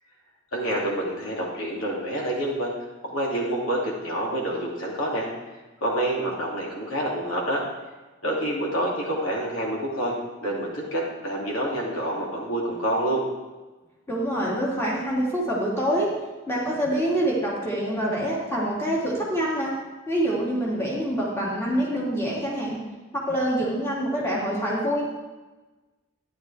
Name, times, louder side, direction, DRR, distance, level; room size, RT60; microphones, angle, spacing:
voice 1, 0.5-2.7 3.1-5.3 5.8-7.6 8.2-10.1 10.4-13.2, right 1 dB, 85° left, -3 dB, 2.7 m, -27 dB
voice 2, 14.1-16.1 16.5-19.7 20.1-22.8 23.1-25.1, equal, 10° left, -5 dB, 2.4 m, -26 dB
12.5 x 10.0 x 3.4 m, 1.2 s
head